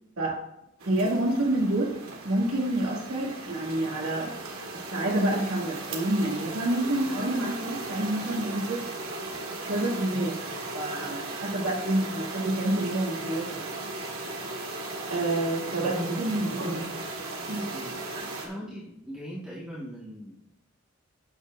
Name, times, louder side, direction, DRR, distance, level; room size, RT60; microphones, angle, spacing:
sound 1, 0.8-18.5, right 2 dB, 75° right, 2.0 m, -37 dB
voice 1, 0.8-4.3 4.7-8.8 9.7-10.4 10.7-13.7 15.1-17.0 17.5-17.6, right 1 dB, 90° right, -3 dB, 2.3 m, -28 dB
voice 2, 15.8-16.8 17.1-20.6, equal, 5° right, -7 dB, 1.6 m, -43 dB
12.0 x 8.8 x 2.5 m, 0.83 s
head